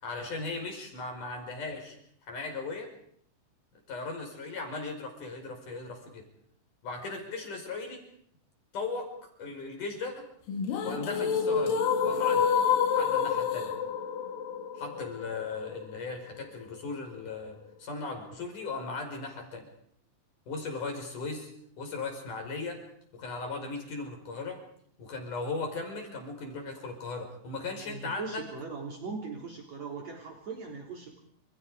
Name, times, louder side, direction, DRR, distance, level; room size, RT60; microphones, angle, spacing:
voice 1, 0.0-2.0 2.3-2.9 3.9-6.2 6.8-8.0 8.7-10.3 10.8-12.5 13.0-13.7 14.7-19.7 20.5-21.5 21.8-22.8 23.1-24.6 25.0-28.4, left 3 dB, 65° left, 3 dB, 6.7 m, -37 dB
sound 1, 10.5-16.5, left 7 dB, 85° left, 3.8 m, -28 dB
voice 2, 27.9-31.2, right 4 dB, 55° right, 0 dB, 4.7 m, -39 dB
29.5 x 28.0 x 5.1 m, 0.65 s
omnidirectional pair, 3.9 m